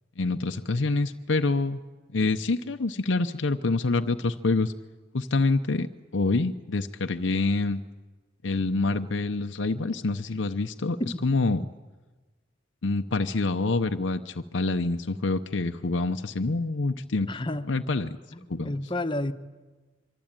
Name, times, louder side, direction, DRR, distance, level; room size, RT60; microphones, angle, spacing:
voice 1, 0.2-1.8 2.1-4.7 5.1-7.8 8.4-11.6 12.8-17.3 17.7-18.2 18.5-18.7, left 3 dB, 80° left, 7 dB, 0.8 m, -26 dB
voice 2, 17.3-17.7 18.3-19.3, left 1 dB, 25° left, 9 dB, 1.0 m, -31 dB
24.5 x 24.5 x 8.9 m, 1.3 s
head